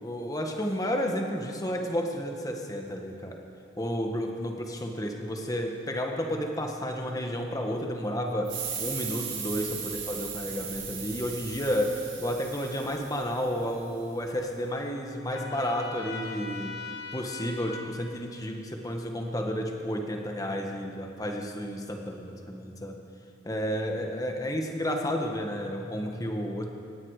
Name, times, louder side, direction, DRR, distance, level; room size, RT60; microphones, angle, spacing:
voice 1, 0.0-3.4 3.8-8.5 8.8-16.9 17.1-23.0 23.4-26.7, equal, 20° left, 2 dB, 1.5 m, -31 dB
sound 1, 8.4-13.8, right 7 dB, 90° right, 4.4 m, -37 dB
Trumpet, 15.3-17.8, left 4 dB, 65° left, 2.3 m, -40 dB
18.5 x 16.0 x 4.9 m, 2.6 s
head